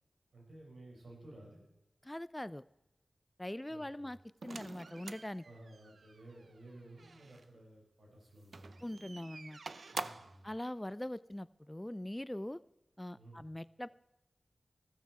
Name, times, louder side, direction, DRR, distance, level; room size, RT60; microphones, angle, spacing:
voice 1, 0.3-1.6 3.7-4.1 5.4-8.8 9.9-10.5 13.1-13.5, right 1 dB, 85° right, -3 dB, 6.7 m, -55 dB
voice 2, 2.0-2.6 3.4-4.2 4.4-5.4 8.8-9.6 10.4-12.6 13.0-13.9, left 1 dB, 15° left, 18 dB, 0.4 m, -42 dB
sound 1, 4.4-7.5 8.4-10.4, right 4 dB, 70° right, 0.6 m, -47 dB
15.0 x 13.5 x 4.8 m, 0.97 s
wide cardioid pair, 80°, 0 cm